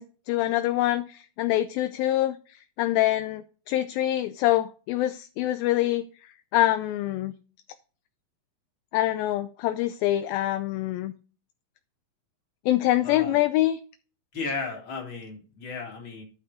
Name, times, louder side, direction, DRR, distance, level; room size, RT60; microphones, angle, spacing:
voice 1, 0.0-2.4 2.8-6.1 6.5-7.3 8.9-11.1 12.7-13.8, left 14 dB, 80° left, 10 dB, 2.3 m, -25 dB
voice 2, 13.0-13.4 14.3-16.2, left 4 dB, 35° left, -1 dB, 3.2 m, -34 dB
10.5 x 5.6 x 4.9 m, 0.37 s
omnidirectional pair, 4.5 m